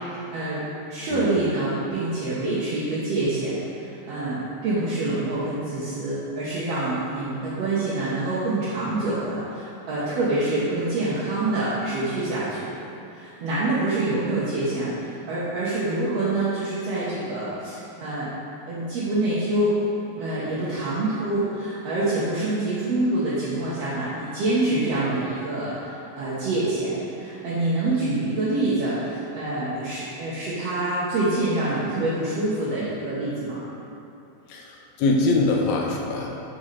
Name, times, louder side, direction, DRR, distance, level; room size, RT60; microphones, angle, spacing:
voice 1, 0.3-0.6 0.9-12.7 13.1-18.3 18.7-19.7 20.1-33.6, right 2 dB, 70° right, -10 dB, 1.6 m, -26 dB
voice 2, 34.5-36.3, left 3 dB, 80° left, 0 dB, 1.8 m, -23 dB
6.1 x 5.3 x 3.2 m, 2.9 s
omnidirectional pair, 3.8 m